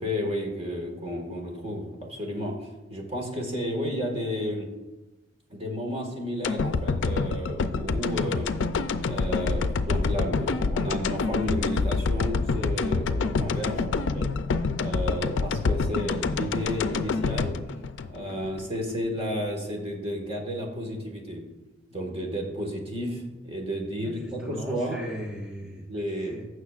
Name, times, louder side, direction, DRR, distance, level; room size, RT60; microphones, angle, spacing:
voice 1, 0.0-4.7 5.5-8.5 9.0-14.3 14.8-17.6 18.1-21.4 21.9-25.0 25.9-26.4, equal, 30° right, 1 dB, 1.6 m, -32 dB
sound 1, 6.4-18.7 19.0-19.1, left 4 dB, 75° left, 0.4 m, -27 dB
voice 2, 24.0-25.9 26.2-26.4, equal, 5° right, -3 dB, 0.9 m, -38 dB
15.5 x 6.4 x 2.4 m, 1.1 s
head